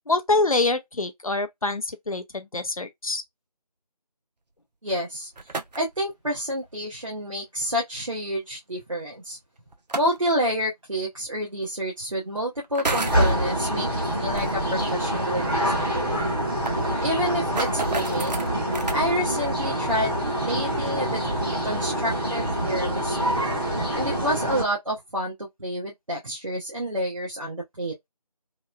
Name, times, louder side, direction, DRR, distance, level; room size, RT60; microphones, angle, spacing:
voice 1, 0.1-3.2, left 2 dB, 60° left, 0.5 m, -25 dB
voice 2, 4.8-9.4 9.9-16.1 17.0-18.4 18.9-20.1 20.4-21.2 21.6-23.3 23.9-27.9, equal, 50° right, 0.8 m, -29 dB
sound 1, 5.1-6.0 7.6-7.7 9.7-10.3 11.5-11.6 12.6-13.3 14.4-14.5 14.8-14.9 15.3-15.4 15.6-15.7 16.2-19.0, right 3 dB, 90° right, 0.6 m, -32 dB
sound 2, 12.9-24.6, right 1 dB, 35° right, 1.1 m, -26 dB
2.9 x 2.1 x 2.3 m
figure-of-eight pair, 180°, 21 cm